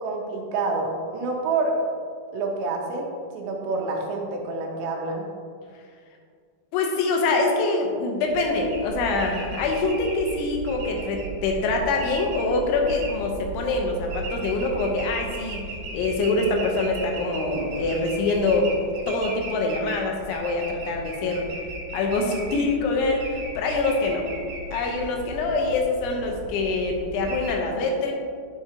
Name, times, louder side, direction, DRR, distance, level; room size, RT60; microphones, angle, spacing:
voice 1, 0.0-1.8 2.3-3.1 3.3-5.3, right 3 dB, 80° right, 1 dB, 3.0 m, -27 dB
voice 2, 6.7-15.6 15.9-18.7 19.1-21.5 21.9-24.2 24.7-28.2, left 3 dB, 85° left, 2 dB, 3.4 m, -25 dB
sound 1, 8.2-27.5, right 2 dB, 60° right, 2.3 m, -36 dB
9.5 x 6.5 x 2.9 m, 2.1 s
omnidirectional pair, 5.2 m